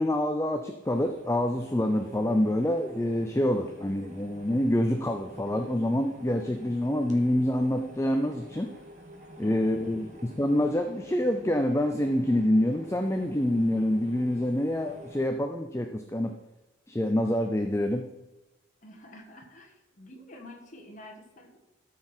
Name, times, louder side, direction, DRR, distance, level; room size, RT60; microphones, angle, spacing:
voice 1, 0.0-8.7 9.4-16.4 16.9-18.1, left 1 dB, 15° left, 5 dB, 0.5 m, -26 dB
sound 1, 0.8-15.3, equal, 35° right, 1.6 m, -48 dB
voice 2, 9.4-10.1 18.8-21.6, left 1 dB, 40° left, 2 dB, 1.6 m, -49 dB
13.0 x 6.8 x 4.4 m, 1.0 s
head